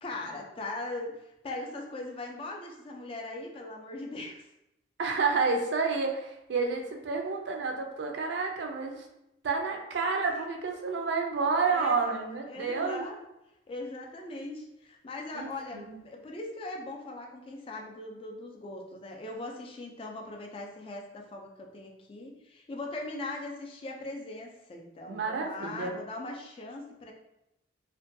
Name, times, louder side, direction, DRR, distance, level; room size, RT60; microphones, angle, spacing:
voice 1, 0.0-1.2 1.4-4.5 11.7-13.2 13.7-27.1, left 2 dB, 30° left, 1 dB, 0.3 m, -40 dB
voice 2, 5.0-9.0 9.4-13.0 15.3-16.0 25.1-25.9, right 4 dB, 65° right, 2 dB, 0.4 m, -30 dB
2.5 x 2.2 x 2.5 m, 0.88 s
head